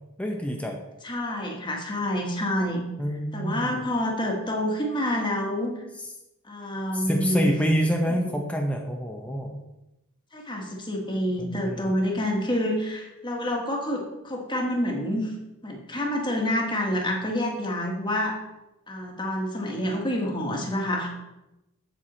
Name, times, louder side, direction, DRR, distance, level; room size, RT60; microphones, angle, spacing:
voice 1, 0.2-0.8 3.0-3.8 6.9-9.6 11.4-11.9, equal, 5° left, 1 dB, 0.7 m, -27 dB
voice 2, 1.0-2.8 3.3-5.8 6.5-7.5 8.1-8.4 10.3-15.3 15.6-18.4 18.9-21.1, equal, 20° left, 1 dB, 1.5 m, -28 dB
8.0 x 7.6 x 4.2 m, 0.95 s
head